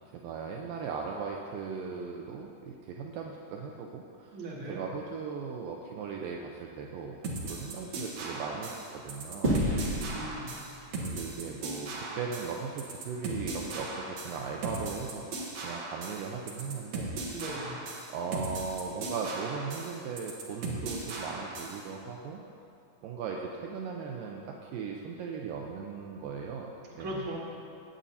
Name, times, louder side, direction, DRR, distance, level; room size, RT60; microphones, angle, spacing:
voice 1, 0.1-4.4 4.7-9.6 11.0-15.3 15.6-17.1 18.1-22.4 23.0-26.7 27.0-27.2, right 5 dB, 80° right, 0 dB, 2.2 m, -38 dB
voice 2, 4.3-4.8 9.6-10.5 17.3-17.8 27.0-27.5, right 1 dB, 40° right, -6 dB, 2.3 m, -38 dB
sound 1, 7.2-21.8, right 2 dB, 60° right, 2.0 m, -38 dB
sound 2, 9.4-12.0, right 1 dB, 20° right, 1.8 m, -32 dB
17.5 x 8.7 x 2.8 m, 2.5 s
omnidirectional pair, 4.3 m